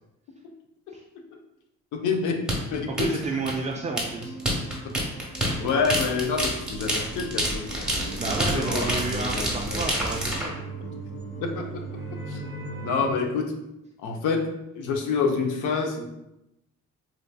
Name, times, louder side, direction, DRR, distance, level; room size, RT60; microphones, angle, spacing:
voice 1, 1.9-2.4 2.7-3.1 3.3-3.4 4.8-4.9 5.2-5.3 5.6-9.8 11.4-11.7 12.3-12.4 12.8-13.5 14.0-14.5 14.7-16.0, left 5 dB, 80° left, 3 dB, 0.6 m, -28 dB
sound 1, 2.5-10.5, equal, ahead, 1.0 m, -28 dB
sound 2, 2.9-13.1, right 3 dB, 45° left, 1.2 m, -38 dB
voice 2, 2.9-4.3 8.2-10.6, right 4 dB, 25° right, 0 dB, 0.3 m, -31 dB
4.5 x 2.6 x 2.2 m, 0.89 s
cardioid pair, 90°, 30 cm